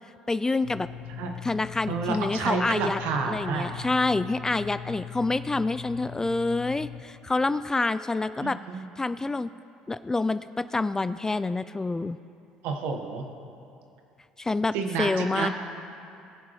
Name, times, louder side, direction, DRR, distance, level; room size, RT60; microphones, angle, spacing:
voice 1, 0.3-0.9 1.4-3.0 3.3-8.6 9.0-9.5 9.9-12.2 14.4-15.5, left 3 dB, 15° left, 13 dB, 0.3 m, -27 dB
sound 1, 0.6-7.0, left 9 dB, 70° left, 0.8 m, -40 dB
voice 2, 1.9-3.7 8.4-8.8 12.6-13.2 14.7-15.5, right 5 dB, 70° right, 3 dB, 1.2 m, -29 dB
20.0 x 7.3 x 3.1 m, 2.6 s
hypercardioid pair, 70°, 3 cm